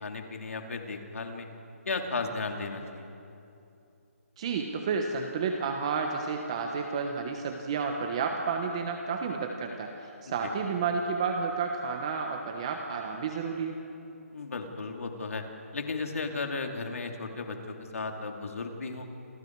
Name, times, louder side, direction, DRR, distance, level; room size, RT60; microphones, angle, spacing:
voice 1, 0.0-1.5 1.8-3.1 10.3-10.5 14.3-15.4 15.7-19.1, left 3 dB, 65° left, 3 dB, 3.0 m, -35 dB
voice 2, 4.4-13.7, right 5 dB, 20° right, 3 dB, 1.1 m, -31 dB
28.0 x 27.0 x 4.7 m, 2.7 s
hypercardioid pair, 175°, 8 cm